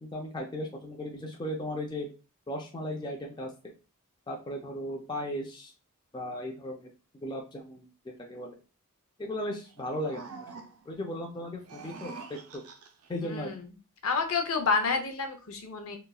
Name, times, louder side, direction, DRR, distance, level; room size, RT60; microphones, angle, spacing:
voice 1, 0.0-2.1 2.5-3.7 4.3-5.7 6.1-6.9 7.2-7.9 8.3-8.6 9.2-10.3 10.6-12.6 13.1-13.5, left 1 dB, 20° left, 0 dB, 0.4 m, -36 dB
sound 1, 9.6-11.0 11.5-13.1, right 4 dB, 80° right, 0.5 m, -46 dB
voice 2, 13.2-13.7 14.0-16.0, left 4 dB, 70° left, 5 dB, 0.5 m, -29 dB
2.9 x 2.3 x 2.3 m, 0.33 s
head